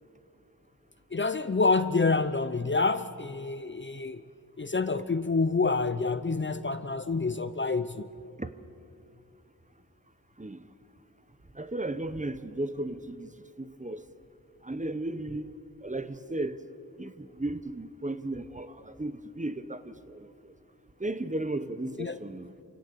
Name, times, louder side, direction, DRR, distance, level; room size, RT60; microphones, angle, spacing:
voice 1, 1.1-4.2 4.6-8.1 22.0-22.2, left 4 dB, 30° left, 0.7 m, -27 dB
voice 2, 11.6-13.3 13.6-14.0 14.6-15.5 15.8-16.6 17.0-20.3 21.0-22.5, right 2 dB, 20° right, 0.9 m, -35 dB
28.0 x 17.0 x 6.8 m
wide cardioid pair, 60°, 36 cm